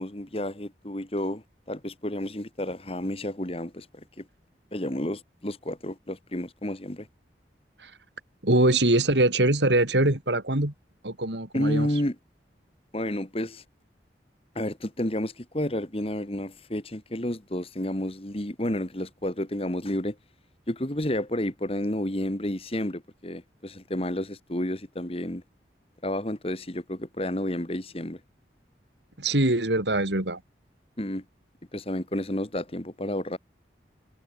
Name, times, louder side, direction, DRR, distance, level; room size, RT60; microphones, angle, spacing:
voice 1, 0.0-4.3 4.7-7.1 11.5-12.2 12.9-13.6 14.6-20.2 20.7-25.4 26.0-28.2 31.0-31.2 31.7-33.4, left 1 dB, 35° left, 2.1 m, -31 dB
voice 2, 8.4-10.7 11.0-11.9 29.2-30.4, right 2 dB, 85° right, 3.9 m, -23 dB
head